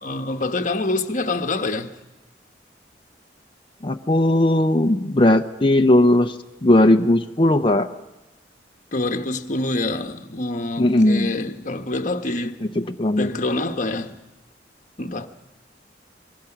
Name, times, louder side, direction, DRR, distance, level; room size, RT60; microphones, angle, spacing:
voice 1, 0.0-2.0 8.9-12.6 13.2-14.2 15.0-15.3, left 2 dB, 45° left, 1.2 m, -26 dB
voice 2, 3.8-6.4 6.6-7.9 10.8-11.3 12.8-13.3, left 1 dB, 30° left, 0.7 m, -17 dB
26.5 x 22.5 x 6.0 m
head